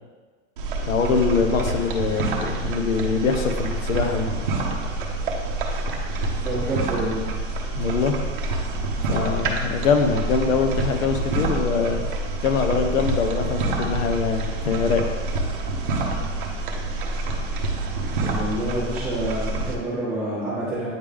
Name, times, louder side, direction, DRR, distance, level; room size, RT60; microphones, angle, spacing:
sound 1, 0.6-19.7, right 2 dB, 40° right, 0.7 m, -27 dB
voice 1, 0.9-4.3 7.7-8.2 9.0-12.0 12.4-15.0, left 5 dB, 85° left, 5 dB, 1.0 m, -23 dB
voice 2, 6.3-7.2 18.2-20.9, right 1 dB, 5° right, -12 dB, 1.1 m, -28 dB
8.7 x 3.5 x 3.4 m, 1.4 s
supercardioid pair, 175°, 39 cm